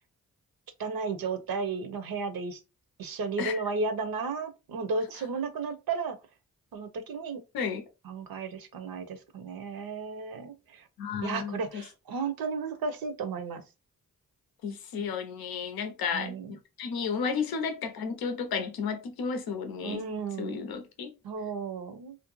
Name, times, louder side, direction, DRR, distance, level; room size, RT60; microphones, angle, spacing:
voice 1, 0.8-2.6 3.0-6.2 6.7-7.4 8.0-10.8 11.2-13.6 16.1-16.5 19.8-20.6 21.2-22.2, right 4 dB, 75° right, 0.6 m, -34 dB
voice 2, 11.0-11.8 14.6-20.0 20.4-21.1, left 6 dB, 85° left, 0.6 m, -33 dB
2.5 x 2.1 x 2.9 m
cardioid pair, 45°, 36 cm